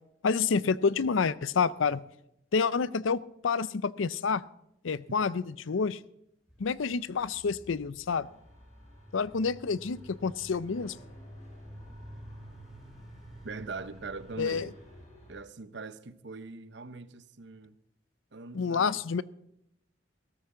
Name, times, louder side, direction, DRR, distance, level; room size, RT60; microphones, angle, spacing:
voice 1, 0.2-2.0 2.5-4.4 4.8-6.0 6.6-8.3 9.1-11.0 14.4-14.7 18.5-19.2, left 5 dB, 85° left, 0.5 m, -28 dB
sound 1, 6.5-15.1, equal, ahead, 2.1 m, -51 dB
sound 2, 8.1-15.3, equal, 35° left, 7.4 m, -55 dB
voice 2, 13.4-14.7 15.3-17.8 18.3-19.0, right 4 dB, 65° right, 0.8 m, -42 dB
17.0 x 14.0 x 3.8 m
head